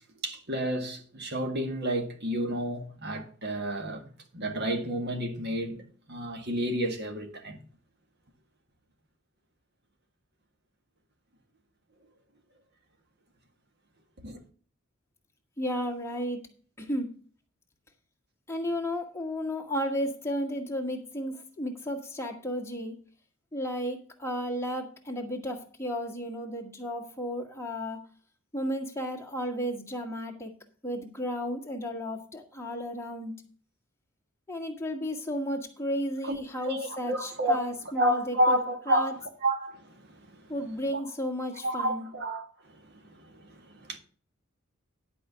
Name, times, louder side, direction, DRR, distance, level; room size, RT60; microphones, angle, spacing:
voice 1, 0.2-4.1 4.3-5.8 6.1-7.6 14.2-14.4 36.2-36.4 36.6-37.6 38.0-40.4 40.9-41.0 41.6-42.5 42.9-44.0, right 1 dB, 55° right, 1.8 m, -30 dB
voice 2, 15.6-16.4 16.8-17.1 18.5-23.0 23.5-28.0 28.5-30.5 30.8-33.3 34.5-38.6 38.9-39.1 40.5-42.1, equal, 15° left, 1.9 m, -33 dB
11.0 x 5.0 x 6.8 m
head